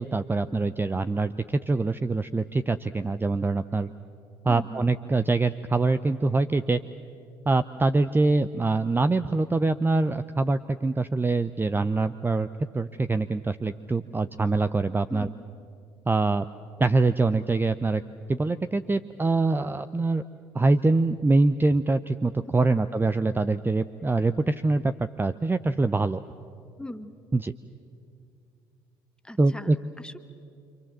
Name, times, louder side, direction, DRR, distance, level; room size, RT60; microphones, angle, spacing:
voice 1, 0.0-3.9 4.4-6.8 7.5-12.5 12.7-15.3 16.1-16.5 16.8-18.0 18.3-20.2 20.5-24.9 25.2-26.2 27.3-27.5 29.4-29.8, right 3 dB, 15° right, 11 dB, 0.7 m, -24 dB
voice 2, 4.5-4.9 15.1-15.4 22.7-22.9 26.8-27.1 29.2-30.2, left 1 dB, 5° left, 9 dB, 1.6 m, -39 dB
27.0 x 26.0 x 7.6 m, 2.5 s
hypercardioid pair, 55°, 12 cm